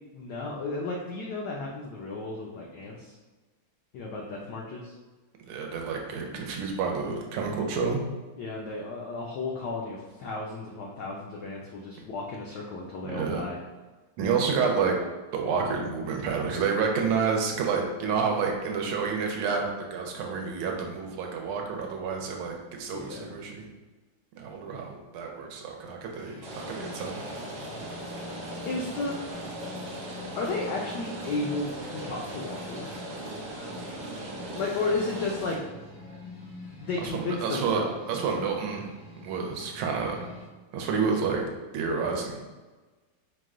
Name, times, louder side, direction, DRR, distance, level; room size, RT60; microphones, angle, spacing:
voice 1, 0.1-3.1 3.9-4.9 8.4-13.6 22.9-23.3 28.6-29.2 30.3-33.1 34.5-35.6 36.8-38.0, left 3 dB, 90° left, -2 dB, 0.9 m, -33 dB
voice 2, 5.5-8.0 13.1-13.4 14.2-15.0 15.3-23.7 24.4-27.2 37.0-38.9 39.2-40.3 40.7-41.5 41.7-42.4, right 5 dB, 80° right, 1 dB, 1.5 m, -29 dB
sound 1, 26.1-40.5, left 2 dB, 50° left, 1.7 m, -45 dB
Rain, 26.4-35.6, right 1 dB, 60° right, 1.4 m, -39 dB
4.8 x 2.2 x 3.6 m, 1.3 s
omnidirectional pair, 2.4 m